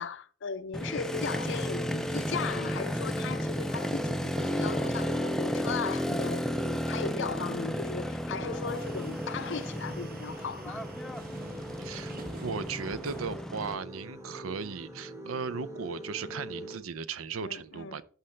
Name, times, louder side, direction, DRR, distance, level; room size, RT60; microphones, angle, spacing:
voice 1, 0.0-10.9 17.4-18.0, left 5 dB, 60° left, 0.6 m, -37 dB
Motorcycle, 0.7-13.7, equal, ahead, 0.4 m, -33 dB
sound 1, 0.8-16.8, equal, 15° right, 1.1 m, -42 dB
sound 2, 8.2-13.3, right 4 dB, 45° right, 0.9 m, -52 dB
voice 2, 11.8-18.0, right 5 dB, 80° right, 0.5 m, -37 dB
11.5 x 6.4 x 3.2 m
head